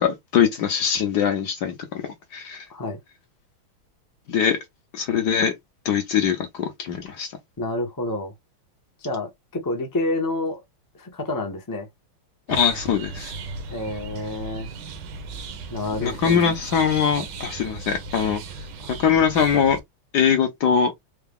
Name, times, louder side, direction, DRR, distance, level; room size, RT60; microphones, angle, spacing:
voice 1, 0.0-2.0 2.3-2.7 4.3-4.6 4.9-5.5 5.8-7.3 12.5-13.3 16.0-18.4 18.9-19.8 20.1-20.9, left 7 dB, 65° left, 1.1 m, -22 dB
voice 2, 7.6-8.3 9.0-10.6 10.9-11.9 13.7-14.7 15.7-16.4 18.8-18.9, left 2 dB, 25° left, 0.4 m, -28 dB
sound 1, 12.5-19.8, right 4 dB, 65° right, 1.3 m, -36 dB
4.6 x 2.3 x 3.4 m
omnidirectional pair, 2.4 m